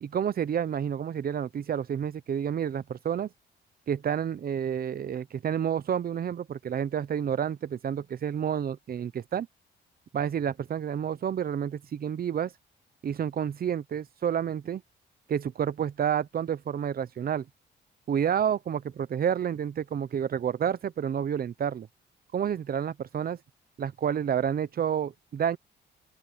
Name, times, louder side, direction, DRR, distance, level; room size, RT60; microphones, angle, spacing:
voice 1, 0.0-3.3 3.9-9.5 10.1-12.5 13.0-14.8 15.3-17.5 18.1-21.9 22.3-23.4 23.8-25.6, right 8 dB, 50° right, 0.9 m, -29 dB
open air
cardioid pair, 90°, 20 cm